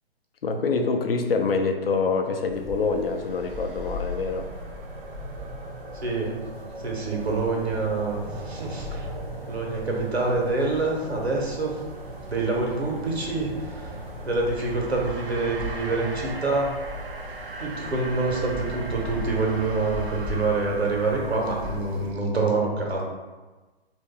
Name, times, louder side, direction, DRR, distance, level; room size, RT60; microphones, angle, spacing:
voice 1, 0.4-4.5, left 4 dB, 65° left, 4 dB, 0.6 m, -25 dB
sound 1, 2.5-22.1, left 3 dB, 5° left, 0.5 m, -40 dB
sound 2, 2.8-21.8, right 2 dB, 60° right, 0.6 m, -38 dB
voice 2, 5.9-6.3 6.8-9.1 9.5-11.8 12.3-14.0 14.2-16.8 17.6-23.0, right 3 dB, 85° right, -1 dB, 1.0 m, -26 dB
3.1 x 2.5 x 3.6 m, 1.3 s
figure-of-eight pair, 130°, 31 cm